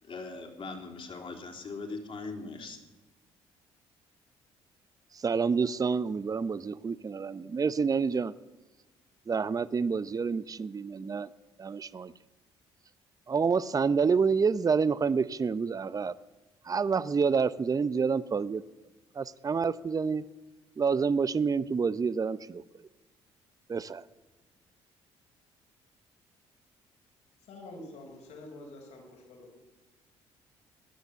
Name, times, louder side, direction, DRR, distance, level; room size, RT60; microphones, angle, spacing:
voice 1, 0.0-2.8, left 3 dB, 50° left, 3 dB, 3.4 m, -40 dB
voice 2, 5.1-8.3 9.3-11.3 11.6-12.1 13.3-16.1 16.6-18.6 19.2-20.2 20.8-22.6 23.7-24.0, right 5 dB, 30° right, 17 dB, 0.7 m, -28 dB
voice 3, 27.5-29.5, left 2 dB, 75° left, 1 dB, 5.0 m, -47 dB
16.5 x 10.5 x 8.2 m, 1.2 s
supercardioid pair, 65°, 12 cm